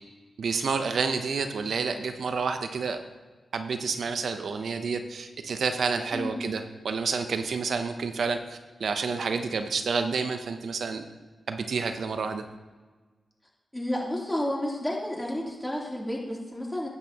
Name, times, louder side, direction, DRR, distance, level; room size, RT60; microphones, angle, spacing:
voice 1, 0.4-3.0 3.5-11.1 11.5-12.4, right 5 dB, 75° right, 7 dB, 0.6 m, -29 dB
voice 2, 13.7-16.9, left 1 dB, 10° left, -3 dB, 3.0 m, -31 dB
10.0 x 8.9 x 2.9 m, 1.3 s
cardioid pair, 45°, 0 cm